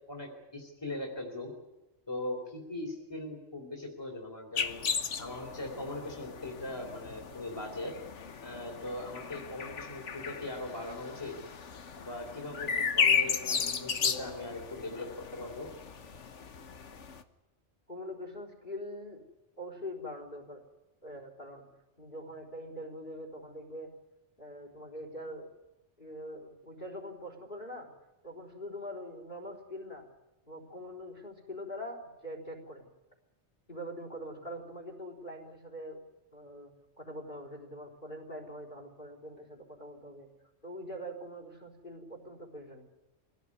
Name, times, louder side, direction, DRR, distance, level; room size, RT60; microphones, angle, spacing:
voice 1, 0.1-1.5 2.1-4.8 5.2-7.9 8.4-11.3 11.9-15.7, left 2 dB, 20° left, 0 dB, 3.2 m, -40 dB
sound 1, 4.6-17.2, left 6 dB, 85° left, 1.5 m, -35 dB
voice 2, 17.9-19.2 19.6-20.6 21.0-21.7 22.0-23.9 24.4-25.5 26.0-27.9 28.2-30.1 30.5-32.8 33.7-36.0 36.3-40.3 40.6-42.8, equal, 45° left, 4 dB, 4.4 m, -43 dB
24.0 x 17.0 x 9.7 m, 1.0 s
omnidirectional pair, 1.2 m